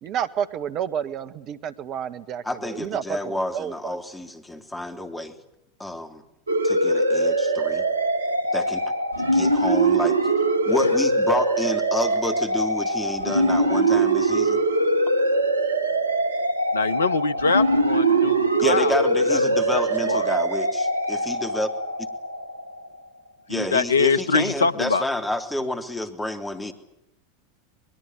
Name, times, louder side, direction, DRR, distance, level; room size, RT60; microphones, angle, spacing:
voice 1, 0.0-4.0, right 9 dB, 40° right, 11 dB, 1.7 m, -30 dB
voice 2, 2.4-5.4 5.8-6.2 6.6-7.8 8.5-8.8 9.2-10.2 10.7-14.6 18.6-21.7 23.5-26.7, left 1 dB, 10° left, 6 dB, 3.4 m, -29 dB
sound 1, 6.5-22.9, right 2 dB, 85° right, 1.3 m, -22 dB
voice 3, 16.7-19.0 19.3-20.4 23.5-25.0, left 4 dB, 80° left, 17 dB, 1.1 m, -24 dB
23.0 x 21.5 x 9.7 m, 0.84 s
figure-of-eight pair, 85°, 0 cm